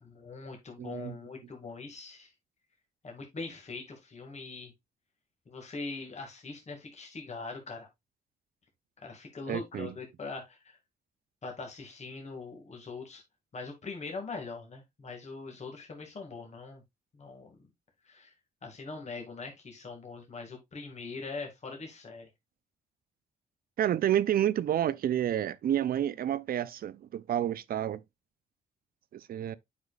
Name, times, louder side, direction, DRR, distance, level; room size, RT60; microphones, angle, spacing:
voice 1, 0.0-2.3 3.0-4.7 5.5-7.9 9.0-10.8 11.4-13.2 13.5-16.8 17.2-17.6 18.1-18.3 18.6-22.3, left 4 dB, 45° left, 2.1 m, -42 dB
voice 2, 0.8-1.1 9.5-9.9 23.8-28.0 29.1-29.6, right 11 dB, 60° right, 0.6 m, -29 dB
8.1 x 5.1 x 2.4 m
cardioid pair, 70°, 17 cm